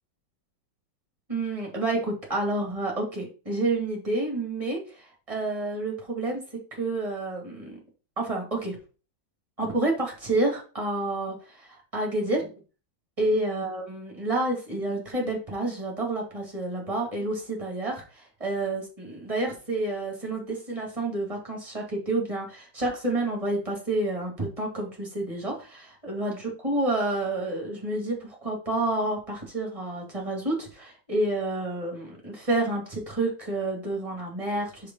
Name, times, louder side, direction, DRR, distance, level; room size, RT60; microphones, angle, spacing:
voice 1, 1.3-6.4 6.7-7.8 8.2-8.8 9.6-12.5 13.2-34.9, right 2 dB, 15° right, 0 dB, 2.3 m, -29 dB
5.1 x 4.7 x 5.4 m, 0.36 s
omnidirectional pair, 2.1 m